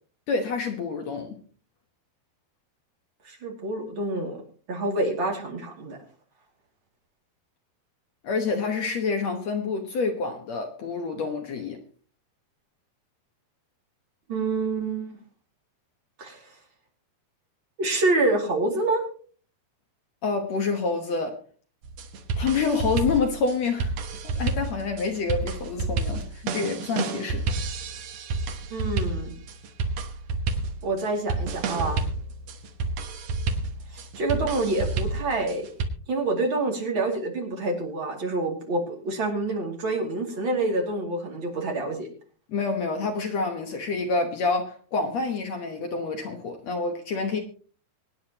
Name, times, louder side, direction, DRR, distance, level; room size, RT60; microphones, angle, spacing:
voice 1, 0.3-1.4 8.2-11.8 20.2-21.4 22.4-23.9 24.2-27.7 42.5-47.4, left 4 dB, 65° left, 1.7 m, -27 dB
voice 2, 3.2-4.4 4.7-6.0 14.3-15.1 16.2-16.4 17.8-19.0 28.7-29.3 30.8-32.1 33.9-35.6 36.1-42.1, right 2 dB, 35° right, 2.7 m, -27 dB
sound 1, 21.8-35.9, right 3 dB, 70° right, 1.6 m, -30 dB
24.5 x 9.4 x 2.9 m
omnidirectional pair, 4.6 m